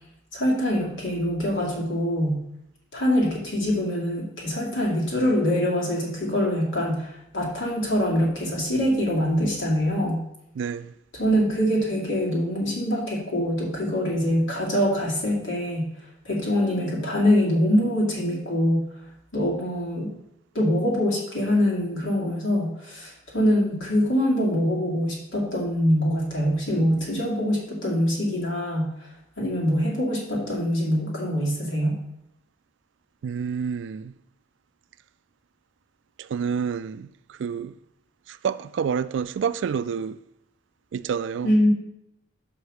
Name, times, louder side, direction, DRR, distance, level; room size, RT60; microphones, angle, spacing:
voice 1, 0.3-2.4 2.9-10.2 11.1-15.9 16.2-18.8 19.3-20.1 20.5-28.9 29.4-32.0 41.4-41.7, equal, 85° left, 2.3 m, -24 dB
voice 2, 10.6-10.9 33.2-34.1 36.2-37.7 38.3-40.2 40.9-41.5, right 6 dB, 65° right, 0.3 m, -28 dB
5.5 x 5.0 x 6.4 m
head